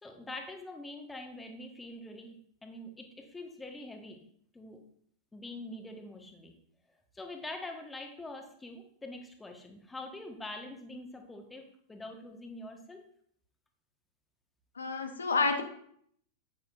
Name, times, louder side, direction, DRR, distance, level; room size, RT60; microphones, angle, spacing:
voice 1, 0.0-4.2 4.5-4.8 5.3-6.5 7.1-13.0, left 2 dB, 10° left, 4 dB, 1.4 m, -44 dB
voice 2, 14.8-15.6, left 4 dB, 75° left, 6 dB, 0.9 m, -29 dB
9.8 x 8.9 x 2.6 m, 0.65 s
figure-of-eight pair, 90°, 0 cm